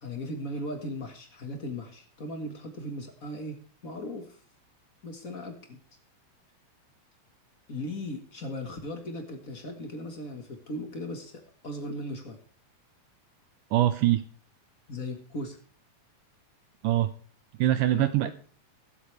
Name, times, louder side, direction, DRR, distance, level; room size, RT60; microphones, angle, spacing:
voice 1, 0.0-4.4 5.0-5.8 7.7-12.4 14.9-15.6 17.9-18.3, left 1 dB, 50° left, 4 dB, 0.9 m, -37 dB
voice 2, 13.7-14.2 16.8-17.1 17.6-18.3, right 14 dB, 80° right, 12 dB, 1.9 m, -23 dB
21.0 x 8.2 x 3.3 m, 0.43 s
omnidirectional pair, 4.3 m